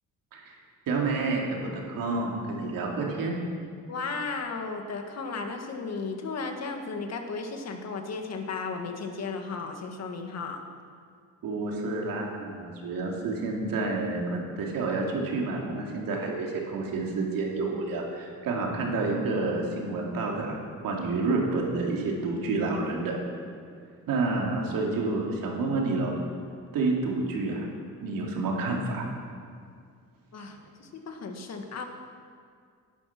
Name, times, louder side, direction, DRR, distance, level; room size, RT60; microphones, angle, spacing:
voice 1, 0.9-3.4 11.4-23.2 24.1-26.1 26.7-27.7 28.0-29.0, right 3 dB, 85° right, -1 dB, 3.0 m, -29 dB
voice 2, 3.9-10.6 30.3-31.8, left 4 dB, 50° left, 4 dB, 1.9 m, -35 dB
17.5 x 11.0 x 6.1 m, 2.2 s
cardioid pair, 135°, 33 cm